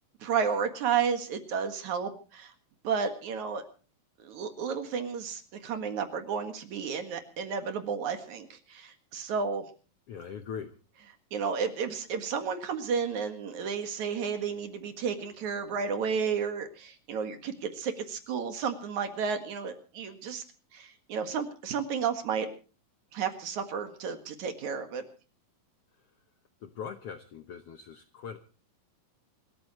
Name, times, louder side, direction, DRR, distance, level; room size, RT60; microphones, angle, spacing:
voice 1, 0.2-2.5 2.8-3.6 4.2-9.6 11.3-20.4 20.7-22.5 23.1-25.0, right 6 dB, 60° right, 7 dB, 3.0 m, -32 dB
voice 2, 10.1-10.8 26.6-28.4, left 7 dB, 70° left, 8 dB, 1.4 m, -41 dB
27.0 x 13.5 x 3.1 m, 0.37 s
omnidirectional pair, 3.9 m